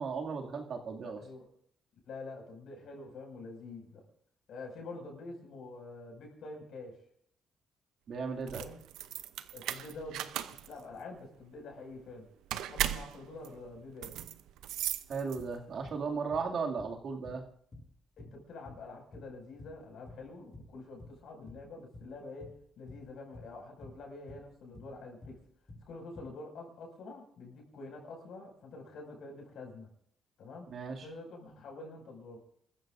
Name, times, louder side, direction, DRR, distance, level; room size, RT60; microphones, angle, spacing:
voice 1, 0.0-1.2 8.1-8.6 15.1-17.4 30.7-31.1, right 5 dB, 60° right, 2 dB, 2.3 m, -36 dB
voice 2, 1.0-1.5 2.0-4.0 4.5-6.9 8.5-8.8 9.5-12.3 12.6-14.3 18.2-25.4 25.9-29.9 30.4-30.7 31.0-32.4, left 3 dB, 70° left, 1 dB, 5.9 m, -47 dB
sound 1, 8.3-15.7, right 12 dB, 90° right, 0.6 m, -38 dB
sound 2, 15.0-15.1 15.4-16.0 16.3-17.0 17.2-17.5 17.7-17.9 18.2-18.9 19.1-20.3 20.5-21.2 21.5-22.1 22.4-22.6 22.9-23.5 23.8-24.5 24.7-25.0 25.2-25.4 25.7-26.3, left 1 dB, 35° left, 6.7 m, -50 dB
28.5 x 14.5 x 2.6 m, 0.67 s
cardioid pair, 90°, 0 cm